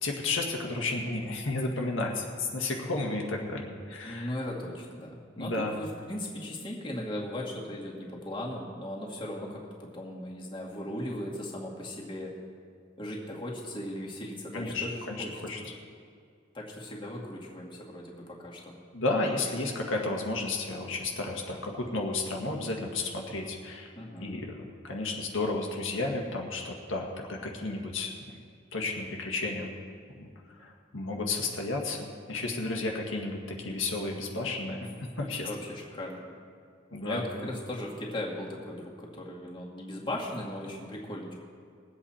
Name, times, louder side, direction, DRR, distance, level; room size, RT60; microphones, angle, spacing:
voice 1, 0.0-4.3 5.4-5.8 14.5-15.6 18.9-23.9 24.2-24.5 24.8-28.4 28.7-29.7 30.2-30.3 30.6-34.9 35.2-35.5 36.9-37.5, left 2 dB, 90° left, 0 dB, 1.8 m, -32 dB
voice 2, 4.0-12.3 13.0-15.6 16.5-18.8 24.0-24.4 35.4-36.2 37.0-41.3, left 1 dB, 25° left, -3 dB, 2.1 m, -38 dB
21.5 x 8.2 x 4.4 m, 2.3 s
head